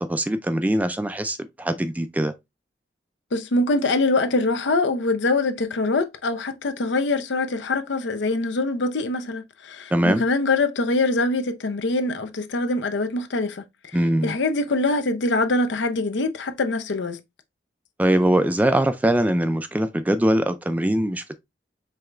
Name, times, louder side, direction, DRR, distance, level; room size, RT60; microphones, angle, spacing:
voice 1, 0.0-2.3 9.9-10.2 13.9-14.4 18.0-21.4, right 1 dB, 10° right, 0.3 m, -22 dB
voice 2, 3.3-13.6 14.2-17.2, left 2 dB, 75° left, 0.6 m, -24 dB
4.8 x 3.3 x 2.4 m
head